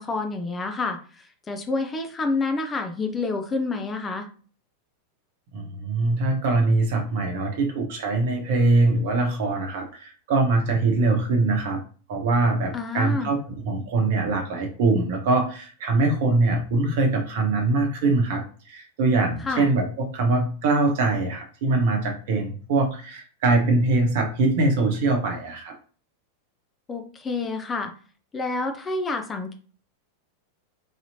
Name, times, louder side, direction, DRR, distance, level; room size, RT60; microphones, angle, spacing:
voice 1, 0.0-4.3 12.7-13.3 19.4-19.7 26.9-27.9 28.3-29.5, left 3 dB, 20° left, 5 dB, 0.5 m, -28 dB
voice 2, 5.5-11.8 12.1-25.7, right 3 dB, 50° right, 3 dB, 1.0 m, -23 dB
4.0 x 2.8 x 2.7 m, 0.40 s
figure-of-eight pair, 90°, 0 cm